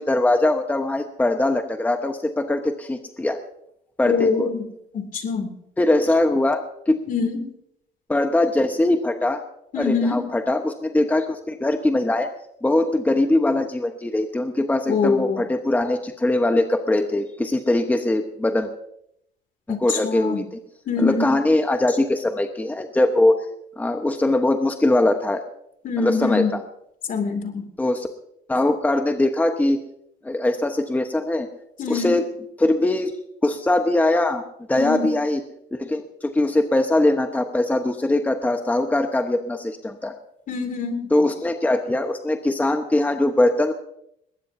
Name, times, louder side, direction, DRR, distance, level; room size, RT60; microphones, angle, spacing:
voice 1, 0.0-3.4 4.0-4.5 5.8-6.6 6.9-7.0 8.1-9.4 9.8-12.3 12.6-18.7 19.8-20.6 21.0-23.3 23.8-25.4 26.0-26.6 27.8-28.1 28.5-29.8 30.2-31.5 31.9-32.3 32.6-33.1 33.4-34.4 34.7-35.4 35.7-40.1 41.1-43.7, left 2 dB, 10° left, 6 dB, 1.1 m, -21 dB
voice 2, 4.0-4.7 4.9-5.5 7.1-7.5 9.7-10.3 14.9-15.4 19.7-20.4 20.9-21.3 25.8-26.5 27.1-27.7 31.8-32.2 34.7-35.1 40.5-41.1, left 5 dB, 55° left, 6 dB, 2.6 m, -24 dB
20.5 x 18.0 x 2.7 m, 0.76 s
cardioid pair, 110°, 17 cm